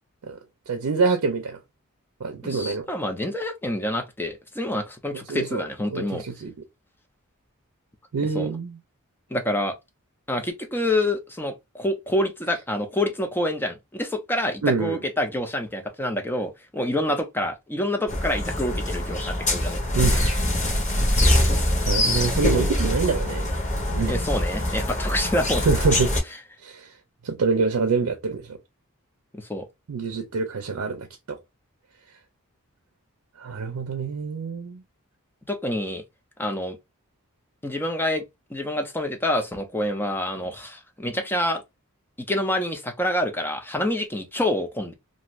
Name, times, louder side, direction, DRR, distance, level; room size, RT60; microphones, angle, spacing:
voice 1, 0.7-1.6 2.2-2.9 5.1-5.6 5.9-6.5 8.1-8.8 14.6-15.0 19.9-20.4 21.4-23.5 23.9-24.2 25.7-26.1 26.6-26.9 27.2-28.6 29.9-31.4 33.4-34.8, right 4 dB, 80° right, 0.5 m, -26 dB
voice 2, 2.4-6.2 8.2-8.5 9.3-9.8 10.3-20.0 24.0-25.7 29.3-29.7 35.5-36.0 36.4-36.8 37.6-38.2 38.5-41.6 42.3-44.9, left 1 dB, 10° left, 0.5 m, -27 dB
sound 1, 18.1-26.2, left 1 dB, 35° left, 1.1 m, -23 dB
2.6 x 2.5 x 3.0 m
head